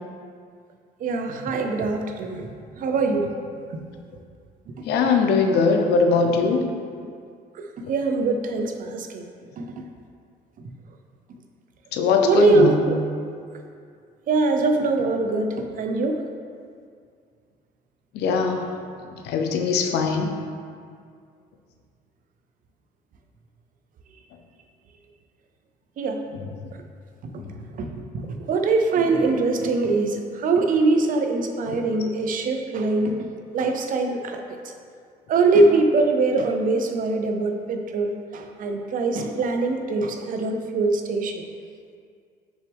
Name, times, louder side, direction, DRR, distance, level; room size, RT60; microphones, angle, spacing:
voice 1, 1.0-2.5 2.8-3.3 3.7-3.8 7.6-9.2 9.6-9.7 12.2-13.0 14.3-16.2 26.0-26.2 27.8-27.9 28.1-28.2 28.5-33.2 33.5-34.6 35.3-41.3, right 3 dB, 55° right, 4 dB, 0.7 m, -22 dB
voice 2, 4.9-6.6 11.9-12.8 18.1-18.6 19.2-20.3, left 4 dB, 80° left, 4 dB, 0.8 m, -20 dB
6.4 x 6.1 x 3.5 m, 2.2 s
cardioid pair, 110°, 17 cm